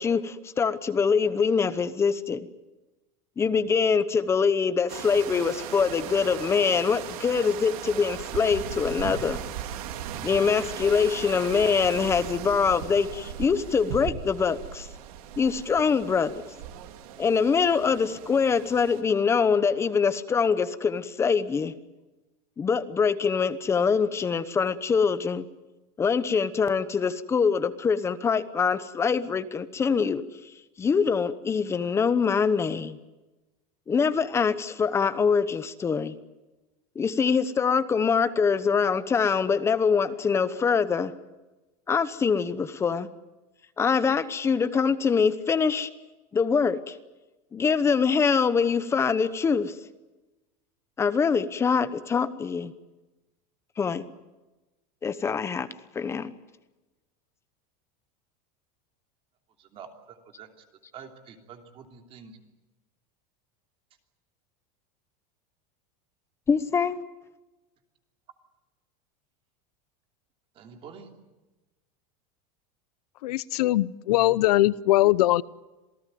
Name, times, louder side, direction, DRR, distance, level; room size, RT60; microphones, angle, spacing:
voice 1, 0.0-2.5 3.4-9.4 10.2-14.9 15.4-16.3 17.2-21.7 22.6-25.4 26.0-30.2 30.8-33.0 33.9-36.2 36.9-41.1 41.9-43.1 43.8-45.9 46.3-47.0 47.5-49.7 51.0-52.7 53.8-54.1 55.0-55.7 55.9-56.3 66.5-67.0, left 5 dB, 15° left, 13 dB, 1.0 m, -24 dB
sound 1, 4.9-19.0, right 10 dB, 70° right, 3.2 m, -38 dB
voice 2, 59.6-60.6 60.9-62.4 70.5-71.2, right 6 dB, 30° right, 5 dB, 3.0 m, -47 dB
voice 3, 73.2-75.4, left 16 dB, 90° left, 20 dB, 0.8 m, -21 dB
27.5 x 17.5 x 9.4 m, 1.1 s
supercardioid pair, 170°, 19 cm